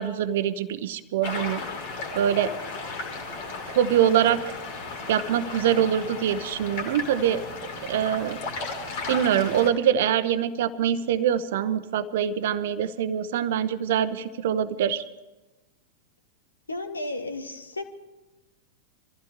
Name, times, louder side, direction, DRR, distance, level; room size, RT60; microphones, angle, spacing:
voice 1, 0.0-1.6 2.1-2.5 3.7-4.4 5.1-7.4 7.8-8.4 9.1-15.0, right 9 dB, 55° right, 13 dB, 0.8 m, -24 dB
sound 1, 1.2-9.7, left 3 dB, 50° left, 3.0 m, -35 dB
voice 2, 16.7-17.8, left 2 dB, 80° left, 8 dB, 1.6 m, -33 dB
24.0 x 15.0 x 3.7 m, 1.1 s
figure-of-eight pair, 90°, 0 cm